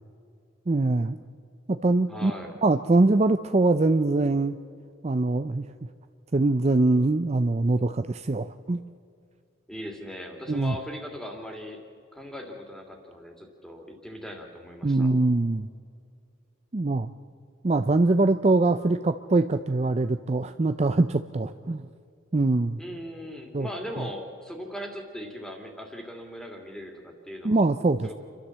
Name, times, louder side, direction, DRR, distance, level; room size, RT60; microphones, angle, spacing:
voice 1, 0.7-1.2 1.7-2.3 2.6-4.6 5.0-5.7 6.3-8.8 10.5-10.8 14.8-15.7 16.7-17.1 17.6-21.9 22.3-22.8 23.5-23.7 27.4-28.1, right 2 dB, 30° right, 9 dB, 0.5 m, -23 dB
voice 2, 2.1-2.6 9.7-11.8 12.1-15.1 22.8-27.6 28.0-28.1, equal, 5° left, 2 dB, 2.8 m, -39 dB
29.5 x 13.0 x 7.5 m, 2.4 s
head